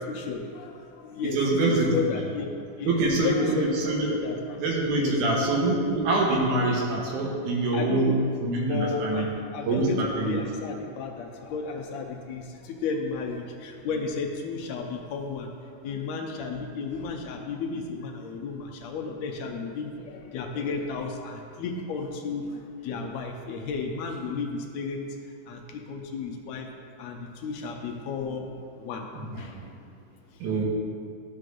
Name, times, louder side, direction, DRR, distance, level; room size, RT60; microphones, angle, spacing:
voice 1, 0.1-1.4 1.7-2.5 2.8-3.7 4.0-4.6 4.9-5.1 7.7-8.3 8.7-10.0 10.2-15.5 15.8-25.0 25.5-26.7 27.0-29.1 29.3-29.6, left 4 dB, 75° left, 2 dB, 1.7 m, -33 dB
voice 2, 1.2-1.9 2.9-4.1 4.6-9.3 9.7-10.4 29.2-29.7 30.4-30.6, right 2 dB, 80° right, -2 dB, 2.5 m, -25 dB
12.5 x 6.2 x 2.6 m, 2.2 s
omnidirectional pair, 3.6 m